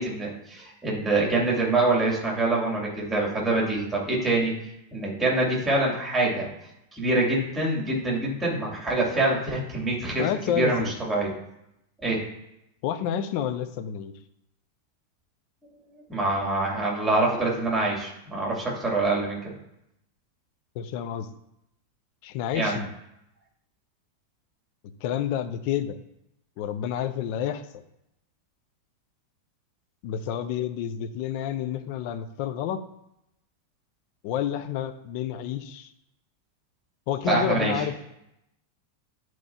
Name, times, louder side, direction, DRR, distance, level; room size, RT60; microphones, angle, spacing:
voice 1, 0.0-4.5 4.9-6.5 6.9-10.3 10.5-11.3 12.0-12.2 16.1-19.4 22.5-22.8 37.2-37.7, right 2 dB, 10° right, -3 dB, 2.9 m, -25 dB
voice 2, 10.2-10.9 12.8-14.1 20.7-21.3 22.2-22.9 25.0-26.0 26.6-27.6 30.0-32.9 34.2-35.9 37.1-37.9, left 9 dB, 45° left, 9 dB, 0.6 m, -29 dB
10.5 x 4.6 x 2.9 m, 0.83 s
figure-of-eight pair, 90°, 0 cm